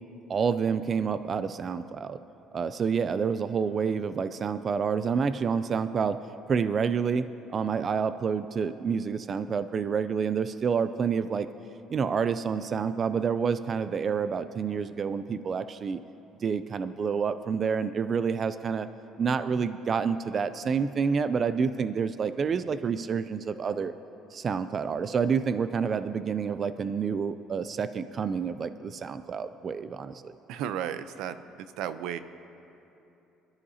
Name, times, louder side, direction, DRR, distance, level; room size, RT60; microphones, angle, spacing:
voice 1, 0.3-2.2 2.5-6.2 6.5-7.3 7.5-11.5 11.9-16.0 16.4-18.9 19.2-23.9 24.3-30.3, right 6 dB, 30° right, 12 dB, 0.3 m, -28 dB
voice 2, 30.5-31.4 31.8-32.2, right 9 dB, 75° right, 12 dB, 0.6 m, -33 dB
26.0 x 12.5 x 2.8 m, 2.9 s
cardioid pair, 150°, 0 cm